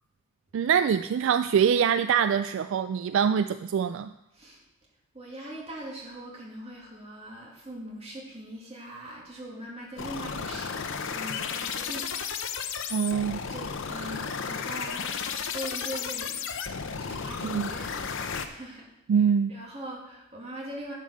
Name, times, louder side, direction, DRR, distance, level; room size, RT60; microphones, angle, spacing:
voice 1, 0.5-4.1 12.9-13.4 17.4-17.7 19.1-19.5, right 7 dB, 60° right, 11 dB, 0.3 m, -24 dB
voice 2, 5.1-13.0 13.5-16.6 16.9-18.9 19.1-19.2 19.5-20.9, right 1 dB, 30° right, -3 dB, 2.6 m, -41 dB
sound 1, 10.0-18.5, left 6 dB, 60° left, 0.7 m, -33 dB
11.0 x 5.3 x 6.5 m, 0.90 s
head